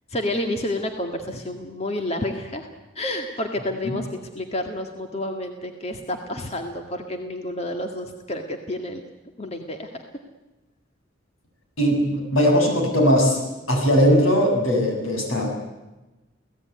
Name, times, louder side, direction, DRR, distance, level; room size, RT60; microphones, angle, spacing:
voice 1, 0.1-2.7 3.0-9.0 9.4-10.0, left 1 dB, 30° left, 4 dB, 2.0 m, -30 dB
voice 2, 11.8-13.4 13.7-15.5, equal, 85° left, 2 dB, 7.7 m, -19 dB
29.0 x 17.5 x 9.6 m, 1.1 s
head